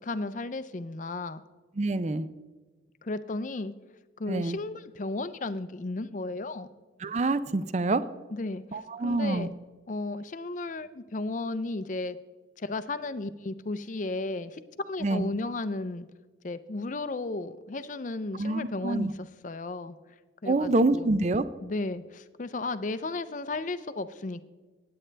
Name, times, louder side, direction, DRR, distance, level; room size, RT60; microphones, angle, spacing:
voice 1, 0.0-1.4 3.0-3.7 4.2-6.7 8.3-9.5 9.9-12.2 12.6-14.6 14.9-16.1 16.4-20.0 20.4-21.1 21.6-24.4, left 2 dB, 40° left, 13 dB, 0.5 m, -34 dB
voice 2, 1.8-2.3 4.3-4.6 7.0-8.0 8.7-9.5 15.0-15.3 18.3-19.1 20.4-21.5, right 2 dB, 35° right, 14 dB, 0.5 m, -26 dB
18.5 x 8.7 x 3.3 m, 1.3 s
head